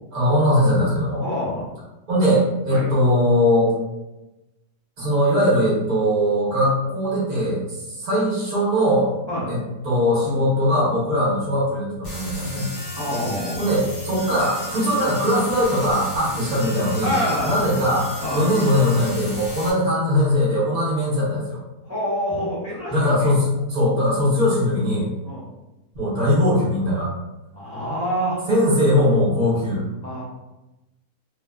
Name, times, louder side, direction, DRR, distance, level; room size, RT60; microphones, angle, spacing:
voice 1, 0.1-1.2 2.1-3.8 5.0-9.1 9.5-9.6 9.8-12.7 13.6-17.1 17.4-21.6 22.9-25.1 25.9-27.1 28.5-29.8, equal, 35° right, -7 dB, 0.9 m, -20 dB
voice 2, 1.2-1.7 2.7-2.9 9.3-9.5 12.9-13.6 17.0-17.6 18.2-18.4 21.9-23.3 25.2-25.4 27.5-28.4 30.0-30.2, equal, 10° right, -10 dB, 1.0 m, -26 dB
sound 1, 12.0-19.7, left 1 dB, 55° left, 0.6 m, -35 dB
2.5 x 2.5 x 2.3 m, 0.99 s
omnidirectional pair, 1.7 m